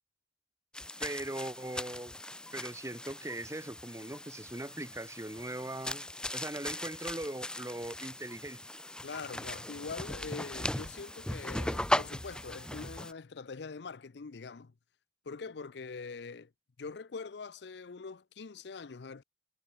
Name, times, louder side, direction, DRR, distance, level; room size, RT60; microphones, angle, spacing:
sound 1, 0.7-13.1, left 1 dB, 5° left, 0.8 m, -38 dB
voice 1, 1.0-2.1 2.5-6.0 6.3-8.6, right 1 dB, 15° right, 1.4 m, -40 dB
voice 2, 9.0-14.7 15.3-16.5 16.8-19.2, left 4 dB, 70° left, 0.6 m, -43 dB
head